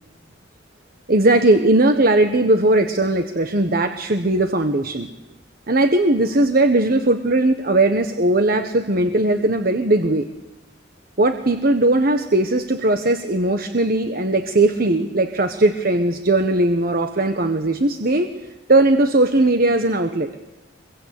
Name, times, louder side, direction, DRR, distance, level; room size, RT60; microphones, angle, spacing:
voice 1, 1.1-5.1 5.7-10.3 11.2-18.3 18.7-20.4, right 2 dB, 50° right, 7 dB, 1.3 m, -18 dB
25.0 x 23.0 x 8.5 m, 1.0 s
head